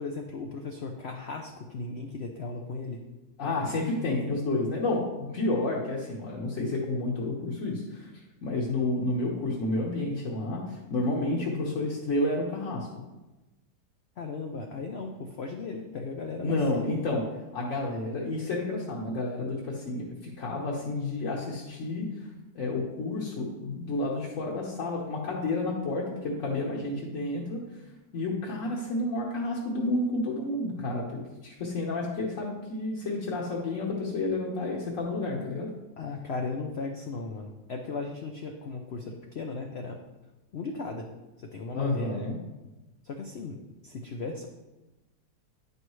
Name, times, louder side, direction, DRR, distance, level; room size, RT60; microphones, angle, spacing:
voice 1, 0.0-3.0 14.2-16.9 36.0-40.0 40.5-41.1 41.4-42.4 43.0-43.6 43.8-44.5, left 3 dB, 85° left, 3 dB, 0.5 m, -36 dB
voice 2, 3.4-8.1 8.4-12.9 16.4-17.2 17.5-22.1 22.5-27.6 28.1-35.7 41.7-42.4, left 2 dB, 55° left, -4 dB, 1.2 m, -30 dB
9.7 x 5.4 x 3.1 m, 1.1 s
omnidirectional pair, 1.9 m